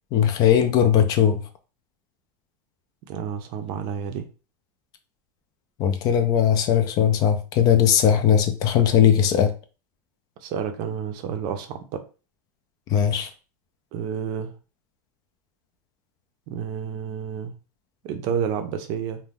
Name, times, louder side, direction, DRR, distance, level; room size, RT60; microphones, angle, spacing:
voice 1, 0.1-1.4 5.8-9.5 12.9-13.3, left 9 dB, 40° left, 0.4 m, -19 dB
voice 2, 3.1-4.3 10.4-12.0 13.9-14.5 16.5-17.6 18.0-19.2, right 7 dB, 50° right, 0.5 m, -30 dB
2.6 x 2.1 x 3.4 m
supercardioid pair, 150°, 10 cm